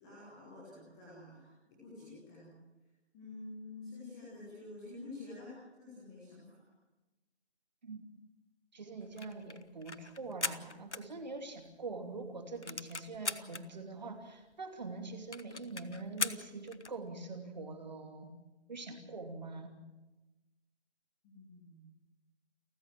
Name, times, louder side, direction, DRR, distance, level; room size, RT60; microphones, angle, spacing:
voice 1, 0.0-2.6 3.1-6.6 21.2-21.9, left 2 dB, 5° left, -6 dB, 1.1 m, -49 dB
voice 2, 8.7-18.4 18.7-19.7, right 3 dB, 40° right, 5 dB, 3.0 m, -44 dB
sound 1, 9.0-11.7 12.0-12.1 12.4-13.6 14.2-14.3 14.5-14.6 14.9-15.0 15.3-17.0, left 3 dB, 80° left, 1.3 m, -40 dB
29.5 x 14.0 x 7.6 m, 1.1 s
figure-of-eight pair, 160°, 34 cm